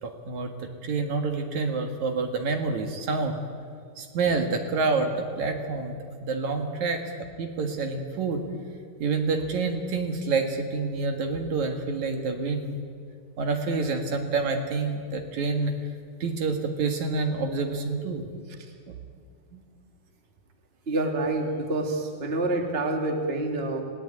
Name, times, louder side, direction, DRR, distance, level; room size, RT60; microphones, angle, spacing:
voice 1, 0.0-3.5 4.0-7.0 7.4-8.4 9.0-12.8 13.4-15.7 16.2-18.3 18.9-19.0 19.5-19.6, right 4 dB, 65° right, 4 dB, 3.1 m, -28 dB
voice 2, 20.9-23.8, right 2 dB, 20° right, 3 dB, 2.3 m, -27 dB
29.0 x 18.0 x 9.0 m, 2.2 s
omnidirectional pair, 3.7 m